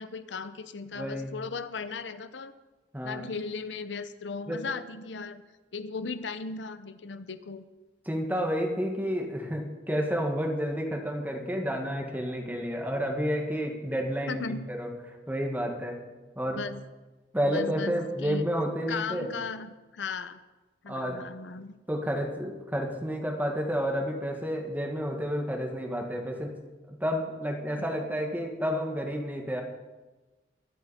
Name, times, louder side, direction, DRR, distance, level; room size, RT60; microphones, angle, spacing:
voice 1, 0.0-2.5 3.0-5.4 5.7-7.6 14.3-14.7 16.5-16.8 17.5-18.5 18.9-20.4 20.8-21.7 27.8-27.9, left 4 dB, 90° left, 12 dB, 0.7 m, -37 dB
voice 2, 0.9-1.4 2.9-3.3 4.5-4.6 8.1-14.9 15.3-16.0 16.4-16.6 17.3-19.4 20.9-21.2 21.9-26.5 26.9-29.6, equal, 10° right, 2 dB, 1.9 m, -30 dB
23.0 x 8.0 x 4.3 m, 1.2 s
head